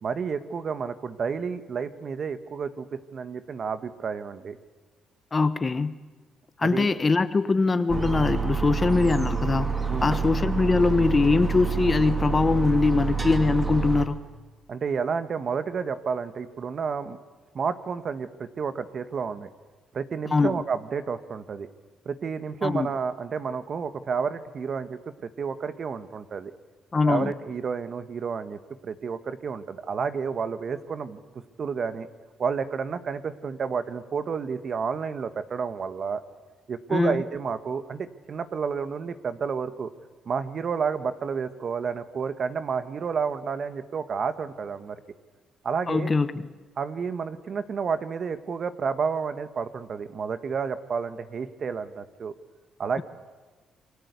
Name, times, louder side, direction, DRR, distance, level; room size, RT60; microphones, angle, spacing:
voice 1, 0.0-4.6 6.6-6.9 9.9-10.2 14.7-17.2 17.5-19.5 19.9-21.7 22.0-26.5 27.0-31.2 31.6-32.1 32.4-36.2 36.7-39.9 40.2-45.0 45.6-46.1 46.8-52.3 52.8-53.0, right 6 dB, 50° right, 11 dB, 1.6 m, -30 dB
voice 2, 5.3-6.0 6.6-9.7 10.0-14.2 20.3-20.5 22.6-22.9 26.9-27.3 36.9-37.2 45.9-46.5, left 4 dB, 30° left, 13 dB, 1.3 m, -22 dB
sound 1, 7.9-14.1, right 5 dB, 25° right, 3.1 m, -28 dB
28.5 x 23.5 x 8.3 m, 1.3 s
cardioid pair, 90°, 0 cm